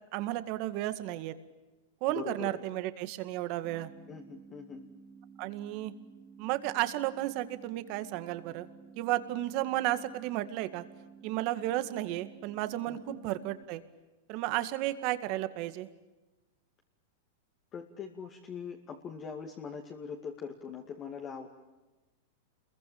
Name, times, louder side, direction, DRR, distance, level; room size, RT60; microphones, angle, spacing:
voice 1, 0.1-1.3 2.0-3.9 5.4-5.9 6.4-8.7 9.0-10.8 11.2-13.8 14.3-15.9, right 15 dB, 45° right, 11 dB, 2.0 m, -33 dB
voice 2, 2.1-2.6 4.1-4.9 12.9-13.2 17.7-21.5, left 6 dB, 25° left, 2 dB, 2.4 m, -42 dB
sound 1, 3.6-13.6, right 6 dB, 20° right, 2.6 m, -54 dB
29.0 x 22.5 x 8.8 m, 1.1 s
supercardioid pair, 150°, 0 cm